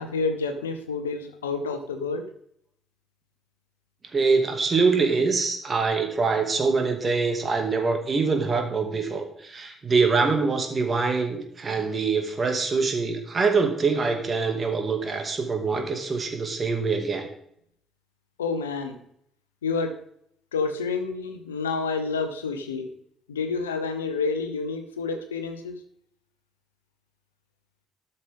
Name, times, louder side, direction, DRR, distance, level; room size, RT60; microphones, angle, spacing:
voice 1, 0.0-2.2 18.4-19.0 19.6-19.9 20.5-22.9 23.3-25.8, left 4 dB, 90° left, 8 dB, 0.9 m, -29 dB
voice 2, 4.1-17.3, right 4 dB, 40° right, 4 dB, 2.2 m, -24 dB
12.5 x 6.7 x 3.6 m, 0.70 s
hypercardioid pair, 45°, 0 cm